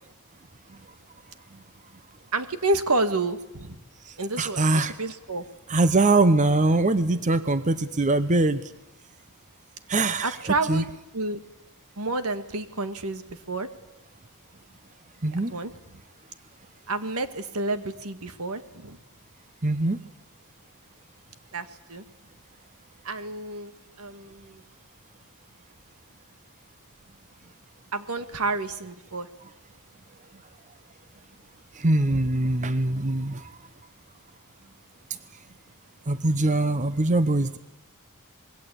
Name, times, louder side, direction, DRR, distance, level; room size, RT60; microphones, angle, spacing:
voice 1, 2.3-3.8 4.2-5.5 10.2-10.9 11.1-11.4 12.0-13.7 15.5-15.8 16.9-19.0 21.5-22.0 23.0-23.7 24.0-24.6 27.9-29.3 32.1-32.6, right 2 dB, 75° right, 10 dB, 1.8 m, -29 dB
voice 2, 4.0-4.9 5.7-8.7 9.9-10.4 10.7-10.8 15.2-15.5 19.6-20.0 31.7-33.5 36.1-37.6, right 2 dB, 35° right, 12 dB, 0.9 m, -22 dB
26.0 x 21.5 x 8.5 m, 0.94 s
head